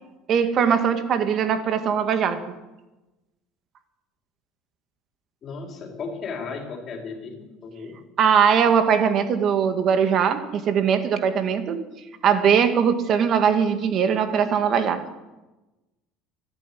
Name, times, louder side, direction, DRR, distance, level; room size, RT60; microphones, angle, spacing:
voice 1, 0.3-2.4 8.2-11.8 12.2-15.0, right 7 dB, 45° right, 9 dB, 1.8 m, -20 dB
voice 2, 5.4-7.9, left 4 dB, 40° left, 2 dB, 4.2 m, -35 dB
13.0 x 11.0 x 10.0 m, 1.1 s
cardioid pair, 125°, 0 cm